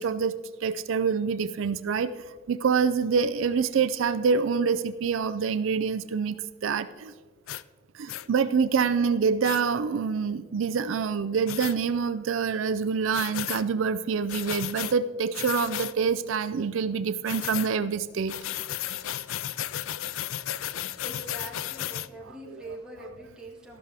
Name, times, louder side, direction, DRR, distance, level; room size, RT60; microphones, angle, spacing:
voice 1, 0.0-7.1 7.9-18.3 22.2-22.8, right 5 dB, 75° right, 13 dB, 0.4 m, -26 dB
sound 1, 7.5-7.6 8.1-8.3 9.4-9.6 11.5-11.8 13.1-13.6 14.3-14.9 15.3-15.9 17.3-17.7 18.3-22.1, left 12 dB, 85° left, 0.4 m, -34 dB
voice 2, 21.0-23.8, right 1 dB, 5° right, -2 dB, 1.8 m, -43 dB
13.0 x 12.0 x 3.4 m, 1.5 s
head